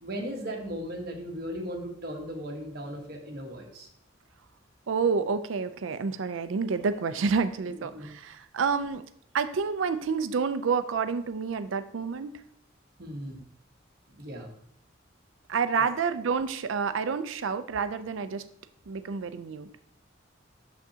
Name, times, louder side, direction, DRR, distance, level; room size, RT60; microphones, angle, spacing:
voice 1, 0.0-3.9 7.6-8.1 13.0-13.4 14.1-14.5 15.8-15.9, equal, 50° right, 1 dB, 1.2 m, -37 dB
voice 2, 4.9-9.0 9.3-12.3 15.5-18.4 18.9-19.7, right 5 dB, 80° right, 12 dB, 0.5 m, -29 dB
6.7 x 6.0 x 2.8 m, 0.65 s
head